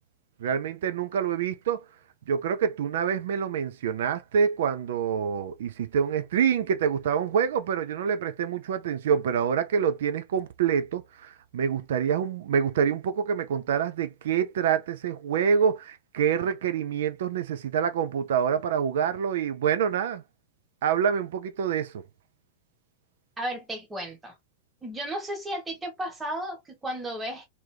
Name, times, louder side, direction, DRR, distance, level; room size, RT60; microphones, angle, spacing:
voice 1, 0.4-1.8 2.3-20.2 20.8-22.0, right 7 dB, 60° right, 0.4 m, -26 dB
voice 2, 23.4-24.3 24.8-27.5, right 1 dB, 10° right, 1.3 m, -34 dB
2.9 x 2.7 x 3.2 m
figure-of-eight pair, 90°, 0 cm